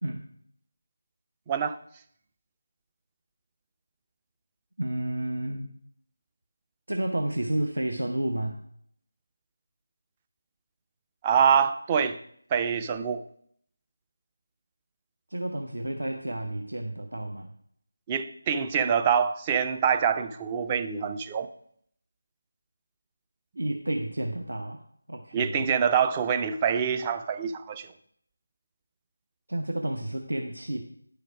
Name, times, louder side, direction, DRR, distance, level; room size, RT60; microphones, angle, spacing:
voice 1, 1.5-1.8 11.2-12.2 12.5-13.2 18.1-21.5 25.3-27.9, right 7 dB, 15° right, 0.4 m, -25 dB
voice 2, 4.8-5.7 6.9-8.6 15.3-17.5 23.6-25.7 29.5-30.8, right 1 dB, 65° right, 0.8 m, -31 dB
10.0 x 5.0 x 6.1 m
figure-of-eight pair, 160°, 0 cm